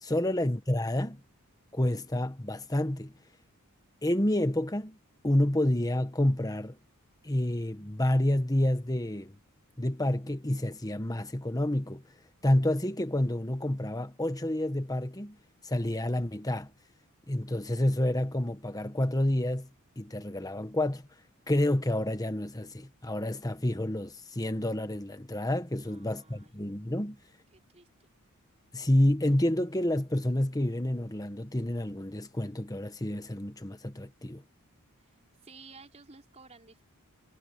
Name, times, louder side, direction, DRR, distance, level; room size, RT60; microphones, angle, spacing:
voice 1, 0.0-1.2 1.7-3.1 4.0-5.0 5.2-6.8 7.2-9.3 9.8-12.0 12.4-15.4 15.6-16.7 17.3-19.7 20.0-21.0 21.5-27.2 28.7-34.4, left 1 dB, 15° left, 1.4 m, -29 dB
voice 2, 25.8-26.5 27.5-28.1 35.0-35.2 35.4-36.8, right 4 dB, 30° right, 4.8 m, -54 dB
head